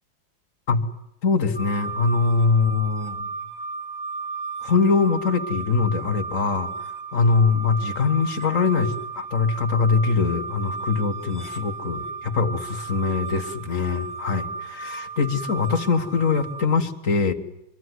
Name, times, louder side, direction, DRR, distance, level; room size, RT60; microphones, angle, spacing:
voice 1, 1.2-3.3 4.6-17.3, left 4 dB, 40° left, 9 dB, 1.6 m, -23 dB
sound 1, 1.5-16.6, right 4 dB, 15° right, 2.2 m, -34 dB
24.5 x 22.5 x 9.6 m, 0.84 s
omnidirectional pair, 2.3 m